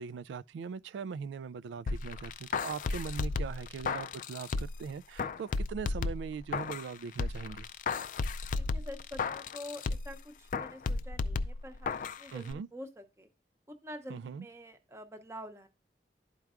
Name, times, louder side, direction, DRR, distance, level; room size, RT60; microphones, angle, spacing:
voice 1, 0.0-7.7 12.3-12.7 14.1-14.5, right 6 dB, 90° right, 0.3 m, -40 dB
sound 1, 1.9-4.9 5.2-6.9 7.2-10.2 10.5-12.2 12.5-12.6, left 4 dB, 45° left, 0.4 m, -34 dB
voice 2, 8.6-13.3 13.7-15.7, equal, 15° right, 0.7 m, -47 dB
12.0 x 4.6 x 2.3 m
head